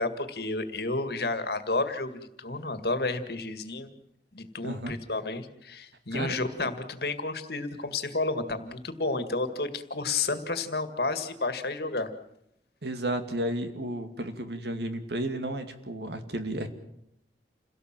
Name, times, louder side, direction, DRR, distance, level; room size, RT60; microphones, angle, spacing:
voice 1, 0.0-3.9 4.3-12.1, left 3 dB, 60° left, 9 dB, 2.0 m, -31 dB
voice 2, 4.6-5.0 6.1-6.4 12.8-16.7, right 1 dB, 70° right, 8 dB, 2.4 m, -32 dB
28.5 x 17.5 x 7.6 m, 0.78 s
head